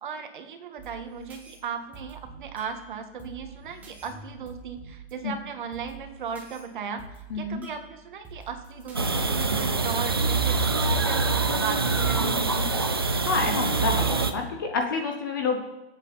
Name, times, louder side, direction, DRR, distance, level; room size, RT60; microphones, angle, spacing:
voice 1, 0.0-7.0 7.3-12.7, right 6 dB, 45° right, 6 dB, 1.8 m, -37 dB
sound 1, 0.8-10.8, right 3 dB, 5° right, 1.1 m, -47 dB
voice 2, 7.3-7.6 13.1-15.6, left 4 dB, 20° left, 3 dB, 0.7 m, -28 dB
sound 2, 8.9-14.3, right 3 dB, 25° right, 0.4 m, -25 dB
24.5 x 8.3 x 4.1 m, 0.97 s
hypercardioid pair, 180°, 34 cm